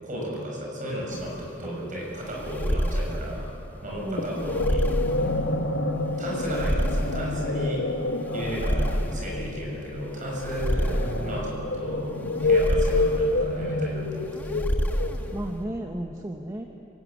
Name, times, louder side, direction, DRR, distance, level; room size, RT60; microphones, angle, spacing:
voice 1, 0.0-1.3 1.6-3.5 3.8-4.9 6.2-7.8 8.3-14.6, equal, 40° right, -2 dB, 7.4 m, -33 dB
sound 1, 1.1-15.6, equal, 10° left, 1.5 m, -30 dB
voice 2, 4.0-4.6 15.3-16.7, right 1 dB, 15° right, 2 dB, 1.1 m, -34 dB
sound 2, 4.2-15.5, left 2 dB, 90° left, 1.6 m, -28 dB
26.0 x 19.0 x 8.6 m, 2.8 s
head